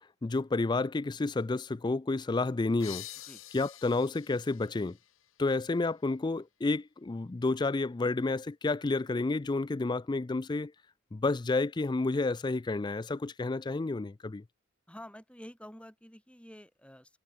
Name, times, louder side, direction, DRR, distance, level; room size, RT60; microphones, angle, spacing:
voice 1, 0.2-3.1 3.5-5.0 5.4-10.7 11.1-14.4, left 3 dB, 20° left, 0.4 m, -30 dB
sound 1, 2.8-6.2, left 14 dB, 75° left, 1.7 m, -48 dB
voice 2, 14.9-17.2, equal, 5° left, 4.3 m, -49 dB
head